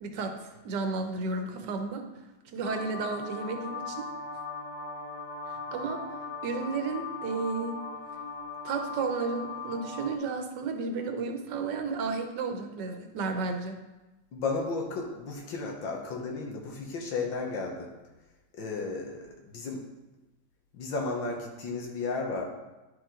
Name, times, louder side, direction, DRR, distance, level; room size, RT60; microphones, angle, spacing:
voice 1, 0.0-2.0 2.5-4.1 5.7-6.0 6.4-7.8 8.6-13.8, right 4 dB, 70° right, 5 dB, 1.5 m, -32 dB
sound 1, 2.6-10.2, left 3 dB, 5° left, 1.3 m, -39 dB
voice 2, 14.3-17.9 18.6-19.8 20.7-22.4, left 3 dB, 85° left, 0 dB, 1.9 m, -33 dB
10.5 x 5.0 x 3.8 m, 1.1 s
omnidirectional pair, 2.0 m